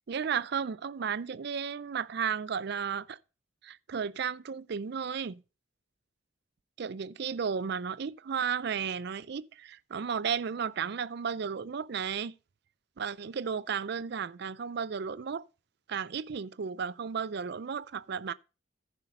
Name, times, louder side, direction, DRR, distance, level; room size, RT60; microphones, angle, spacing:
voice 1, 0.1-3.2 3.6-5.4 6.8-12.3 13.0-15.5 15.9-18.3, right 6 dB, 55° right, 0.4 m, -34 dB
14.5 x 5.6 x 4.0 m
head